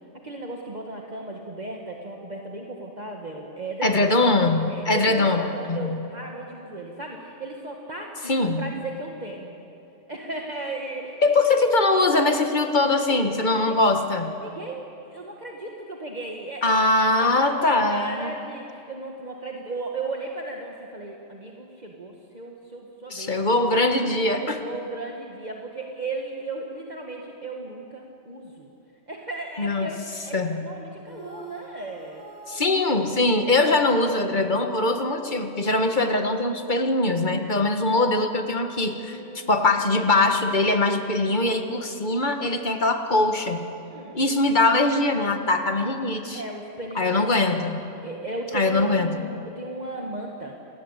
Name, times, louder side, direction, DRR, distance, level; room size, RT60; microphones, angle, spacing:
voice 1, 0.2-4.1 4.7-9.6 10.1-11.3 13.1-13.8 14.2-16.9 17.2-23.4 24.4-28.7 29.1-32.2 39.0-39.7 43.8-44.2 46.3-47.7 48.0-50.6, right 2 dB, 35° right, 0 dB, 2.0 m, -36 dB
voice 2, 3.8-6.0 8.3-8.7 11.2-14.3 16.6-18.3 23.1-24.6 29.6-30.0 30.3-30.7 32.5-43.6 44.1-46.4 47.0-47.8 48.5-49.3, left 2 dB, 40° left, 6 dB, 1.8 m, -22 dB
sound 1, 31.0-34.5, right 2 dB, 20° right, 4.2 m, -45 dB
28.0 x 20.5 x 8.3 m, 2.8 s
omnidirectional pair, 1.3 m